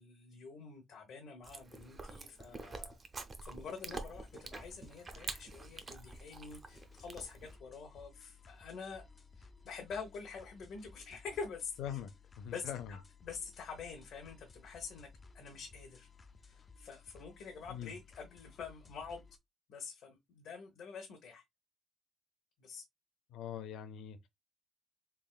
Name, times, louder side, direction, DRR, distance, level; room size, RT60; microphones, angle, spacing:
voice 1, 0.0-9.0 9.3-12.0 12.5-15.1 15.3-16.1 16.4-19.3 19.7-21.4 22.6-22.8, left 5 dB, 60° left, 1.0 m, -47 dB
Chewing mastication, 1.4-7.6, right 3 dB, 25° right, 0.6 m, -47 dB
sound 1, 4.1-19.4, left 4 dB, 25° left, 0.5 m, -58 dB
voice 2, 11.8-13.0 17.7-17.9 23.3-24.3, left 9 dB, 90° left, 0.5 m, -43 dB
3.9 x 3.4 x 2.3 m
cardioid pair, 170°, 0 cm